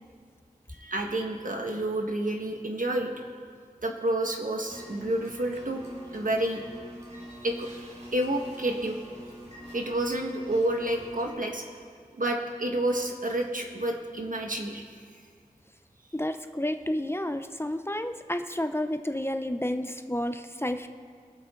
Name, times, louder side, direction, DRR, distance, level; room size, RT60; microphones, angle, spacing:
voice 1, 0.7-3.1 3.8-5.9 6.1-6.6 7.1-7.8 8.1-9.0 9.7-11.6 12.2-14.8, right 1 dB, 65° right, 2 dB, 1.5 m, -29 dB
sound 1, 4.7-11.3, equal, 50° right, 3.8 m, -44 dB
voice 2, 16.1-20.9, left 1 dB, 15° left, 8 dB, 0.6 m, -31 dB
23.5 x 7.9 x 3.8 m, 2.2 s
wide cardioid pair, 45°, 15 cm